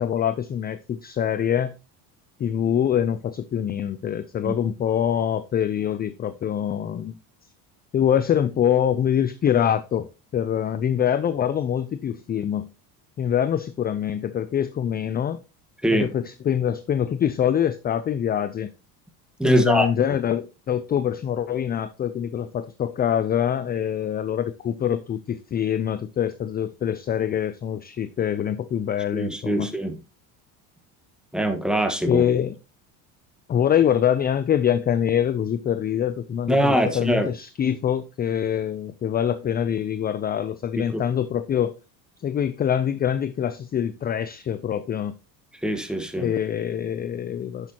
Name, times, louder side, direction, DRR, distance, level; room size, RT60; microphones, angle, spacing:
voice 1, 0.0-1.7 2.4-7.1 7.9-12.7 13.2-15.4 15.9-18.7 19.4-29.7 32.1-32.5 33.5-41.8 42.2-45.2 46.2-47.7, left 9 dB, 25° left, 0.3 m, -24 dB
voice 2, 19.4-19.9 29.1-30.0 31.3-32.2 36.5-37.3 40.8-41.0 45.6-46.3, right 1 dB, ahead, 1.4 m, -23 dB
10.5 x 6.2 x 2.8 m
supercardioid pair, 95°, 46 cm